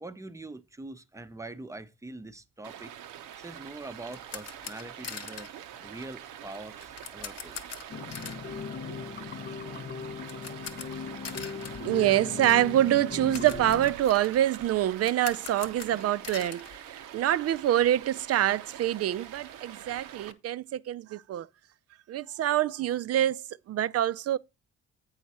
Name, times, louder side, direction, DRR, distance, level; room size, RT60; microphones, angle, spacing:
voice 1, 0.0-2.9 3.4-5.5 5.8-7.6, right 2 dB, 10° right, 0.6 m, -43 dB
Stream, 2.6-20.3, right 10 dB, 90° right, 0.8 m, -45 dB
sound 1, 3.6-17.6 17.9-18.0 18.4-18.5 18.8-20.3, left 7 dB, 55° left, 1.0 m, -45 dB
sound 2, 7.9-13.9, left 6 dB, 35° left, 0.5 m, -39 dB
voice 2, 11.8-21.5 22.1-24.4, right 12 dB, 55° right, 0.4 m, -26 dB
8.1 x 5.6 x 4.2 m
cardioid pair, 90°, 30 cm